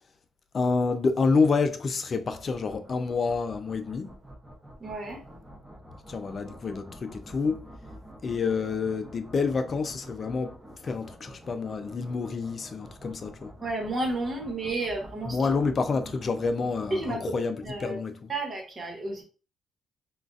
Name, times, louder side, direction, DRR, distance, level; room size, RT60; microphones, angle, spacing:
voice 1, 0.5-4.2 6.1-7.6 8.2-13.5 15.3-18.3, left 4 dB, 40° left, 0.5 m, -28 dB
sound 1, 2.3-17.1, equal, 10° right, 0.9 m, -48 dB
voice 2, 4.8-5.2 13.6-15.4 16.9-17.3 17.6-18.0 18.3-19.2, right 2 dB, 35° right, 1.2 m, -31 dB
3.7 x 2.4 x 2.5 m
cardioid pair, 90°, 0 cm